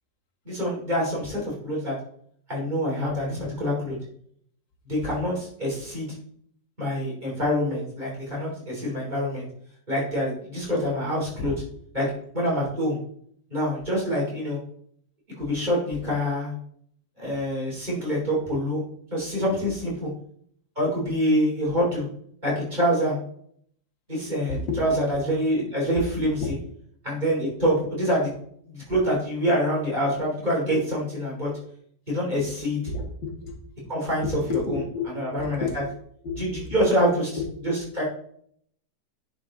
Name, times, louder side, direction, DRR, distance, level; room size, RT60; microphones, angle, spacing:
voice 1, 0.5-1.9 2.5-4.0 4.9-6.1 6.8-9.5 9.9-11.5 11.9-12.1 12.3-13.0 13.5-14.6 15.4-16.5 17.2-18.8 19.1-20.1 20.8-22.1 22.4-23.2 24.1-26.4 27.0-28.3 28.7-31.5 32.1-32.8 33.9-34.8 35.2-35.7 36.4-37.3 37.6-38.0, equal, 25° right, -5 dB, 3.7 m, -26 dB
voice 2, 24.5-24.9 26.4-26.5 32.9-33.5 34.2-35.1 35.4-35.8 36.2-36.6 37.4-37.5, left 4 dB, 85° left, 2 dB, 2.2 m, -30 dB
10.0 x 5.1 x 3.9 m, 0.64 s
omnidirectional pair, 2.0 m